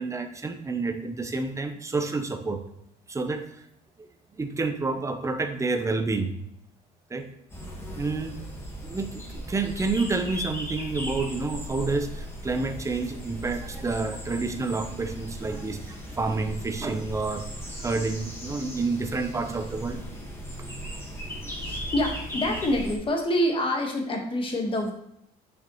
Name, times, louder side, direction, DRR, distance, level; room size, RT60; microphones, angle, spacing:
voice 1, 0.0-2.6 3.1-3.6 4.0-4.1 4.4-6.3 7.1-7.3 8.0-8.4 8.8-17.5 17.8-20.0, right 3 dB, 20° right, 7 dB, 0.7 m, -29 dB
sound 1, 7.5-23.0, equal, 15° left, 1.5 m, -37 dB
voice 2, 21.6-24.9, left 1 dB, 30° left, 2 dB, 1.4 m, -26 dB
6.5 x 5.5 x 3.1 m, 0.76 s
cardioid pair, 110°, 17 cm